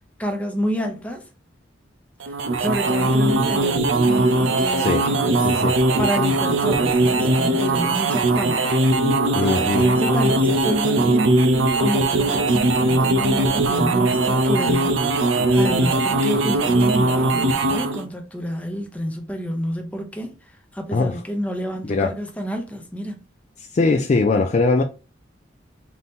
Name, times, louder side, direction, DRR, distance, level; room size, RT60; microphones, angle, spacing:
voice 1, 0.2-1.2 2.3-5.4 6.0-8.7 9.4-23.2, equal, 5° left, 0.7 m, -29 dB
sound 1, 2.2-18.0, right 2 dB, 80° right, 0.5 m, -20 dB
voice 2, 5.4-5.8 9.3-9.9 20.9-21.2 21.8-22.1 23.7-24.8, left 3 dB, 35° left, 0.3 m, -20 dB
3.9 x 2.8 x 3.5 m
head